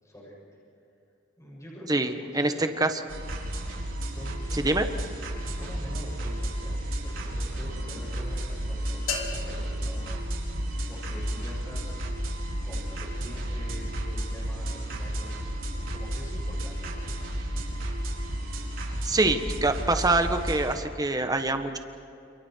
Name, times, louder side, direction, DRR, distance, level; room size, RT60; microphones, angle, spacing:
voice 1, 0.0-0.6 1.4-2.7 4.1-5.2 5.5-10.1 10.9-12.0 12.6-15.5 15.9-17.1, equal, 15° left, -4 dB, 6.8 m, -45 dB
voice 2, 1.9-2.9 4.5-4.9 19.0-21.8, right 2 dB, 20° right, 7 dB, 1.4 m, -25 dB
sound 1, 3.1-20.7, right 1 dB, 80° right, 5.0 m, -32 dB
sound 2, 9.1-11.1, left 5 dB, 85° left, 3.4 m, -37 dB
29.5 x 28.5 x 4.7 m, 2.6 s
head